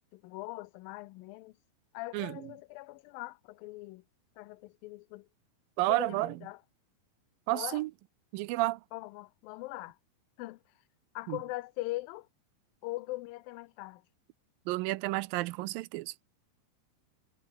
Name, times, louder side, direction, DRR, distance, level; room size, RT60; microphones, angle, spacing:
voice 1, 0.1-1.6 1.9-4.0 4.4-5.3 5.9-6.6 7.5-7.8 8.9-10.0 10.4-10.6 11.2-12.3 12.8-14.0, left 20 dB, 90° left, 2.4 m, -41 dB
voice 2, 2.1-2.4 5.8-6.4 7.5-7.9 8.3-8.8 11.3-11.4 14.7-16.1, right 19 dB, 85° right, 2.4 m, -31 dB
omnidirectional pair, 4.0 m